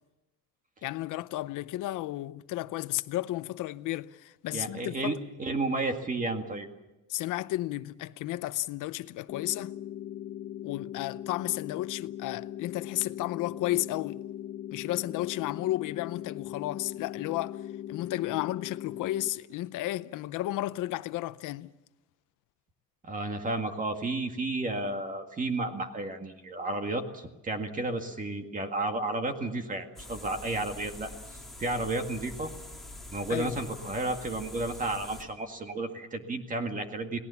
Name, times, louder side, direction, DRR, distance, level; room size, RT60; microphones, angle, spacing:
voice 1, 0.8-5.2 7.1-9.7 10.6-14.2 14.7-21.8 33.3-33.5, left 16 dB, 70° left, 0.7 m, -33 dB
voice 2, 4.5-6.7 23.0-32.5 33.1-37.2, right 2 dB, 25° right, 2.0 m, -32 dB
sound 1, 9.3-19.3, left 11 dB, 40° left, 1.0 m, -40 dB
sound 2, 30.0-35.2, left 2 dB, ahead, 3.1 m, -45 dB
29.5 x 18.5 x 7.1 m
cardioid pair, 150°, 33 cm